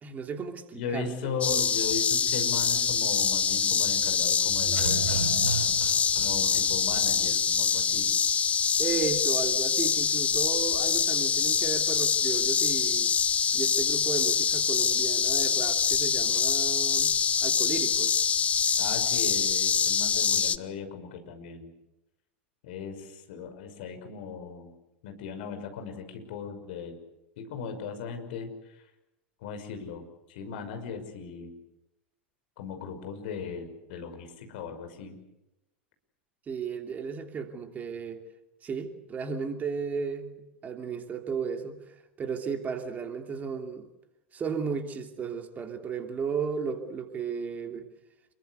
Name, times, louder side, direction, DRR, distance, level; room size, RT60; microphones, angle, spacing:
voice 1, 0.0-1.4 8.8-13.1 13.5-17.2 17.4-18.2 36.5-38.2 38.6-40.3 40.6-41.8 42.2-43.9 44.3-47.9, right 6 dB, 25° right, 3.1 m, -34 dB
voice 2, 0.7-5.3 6.2-8.2 18.8-21.7 22.6-24.7 25.0-27.0 27.4-28.8 29.4-31.6 32.6-35.2, left 5 dB, 60° left, 5.9 m, -37 dB
sound 1, 1.4-20.6, left 6 dB, 20° left, 1.0 m, -25 dB
sound 2, 4.5-7.3 7.6-7.7, right 5 dB, 75° right, 4.3 m, -34 dB
28.0 x 22.5 x 8.2 m
figure-of-eight pair, 85°, 6 cm